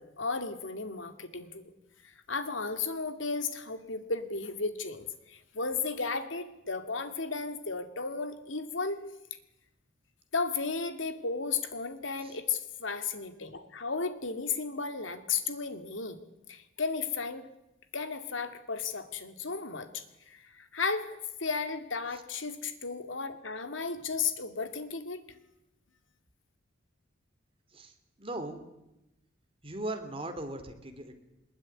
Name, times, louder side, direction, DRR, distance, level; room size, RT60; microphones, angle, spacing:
voice 1, 0.0-1.6 2.0-9.0 10.3-16.2 16.5-17.5 17.9-25.2, left 4 dB, 75° left, 9 dB, 2.4 m, -34 dB
voice 2, 27.7-28.6 29.6-31.1, right 1 dB, 30° right, 7 dB, 3.1 m, -39 dB
22.0 x 21.0 x 9.8 m, 0.91 s
head